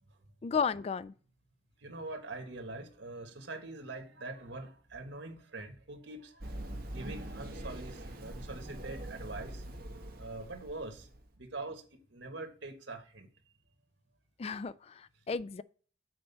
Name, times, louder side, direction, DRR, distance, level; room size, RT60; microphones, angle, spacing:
voice 1, 0.4-1.1 14.4-15.6, left 5 dB, 35° left, 0.3 m, -33 dB
voice 2, 1.8-9.6 10.2-11.1 11.4-11.8 12.1-13.3, right 2 dB, 90° right, 1.5 m, -44 dB
Run, 6.4-11.2, right 1 dB, 55° right, 1.4 m, -43 dB
7.8 x 4.4 x 5.6 m
head